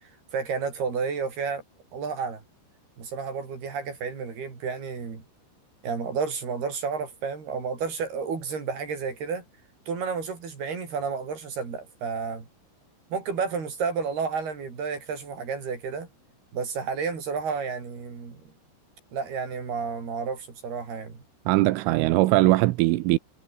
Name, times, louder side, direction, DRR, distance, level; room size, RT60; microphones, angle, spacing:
voice 1, 0.3-1.6 1.9-2.4 3.0-5.2 5.8-9.4 9.9-12.5 13.1-16.1 16.5-18.5 19.1-21.2, right 5 dB, 50° right, 7.8 m, -31 dB
voice 2, 21.5-23.2, right 18 dB, 85° right, 3.4 m, -20 dB
omnidirectional pair, 5.7 m